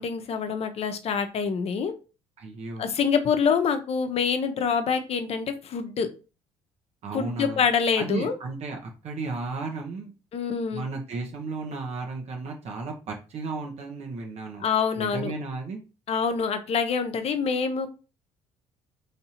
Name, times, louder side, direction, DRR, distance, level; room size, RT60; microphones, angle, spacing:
voice 1, 0.0-1.9 2.8-6.1 7.1-8.4 10.3-10.8 14.6-15.3 16.1-17.9, left 6 dB, 50° left, 8 dB, 0.8 m, -26 dB
voice 2, 2.4-2.9 7.0-7.6 8.0-10.1 10.7-14.6 14.9-15.8, right 3 dB, 55° right, 2 dB, 1.0 m, -34 dB
3.3 x 2.7 x 4.3 m, 0.32 s
supercardioid pair, 65°, 13 cm